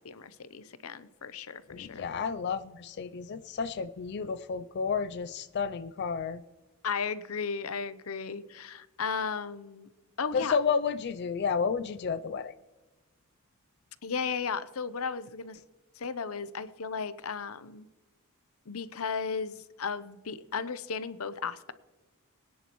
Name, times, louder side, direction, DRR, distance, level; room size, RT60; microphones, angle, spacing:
voice 1, 0.0-2.1 6.8-9.9 10.2-10.6 14.0-15.6 16.0-17.9 18.7-21.7, left 5 dB, 85° left, 14 dB, 0.7 m, -35 dB
voice 2, 1.7-6.4 10.3-12.5, left 6 dB, 50° left, 11 dB, 0.4 m, -31 dB
23.0 x 10.0 x 3.1 m, 1.2 s
head